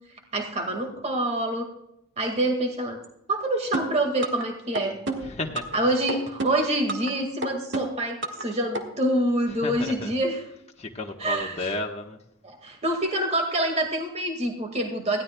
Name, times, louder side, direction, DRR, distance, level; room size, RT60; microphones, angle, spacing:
voice 1, 0.3-1.7 2.2-3.0 3.3-5.0 5.7-10.5 11.2-11.7 12.4-15.2, right 1 dB, 30° right, 4 dB, 1.9 m, -26 dB
sound 1, 3.7-4.5 4.7-5.8 6.1-7.1 7.4-8.5 8.7-8.8, right 2 dB, 55° right, 1.7 m, -30 dB
voice 2, 5.2-5.8 9.5-10.1 10.8-12.2, left 2 dB, 30° left, 1 dB, 1.2 m, -33 dB
20.5 x 15.5 x 2.3 m, 0.79 s
head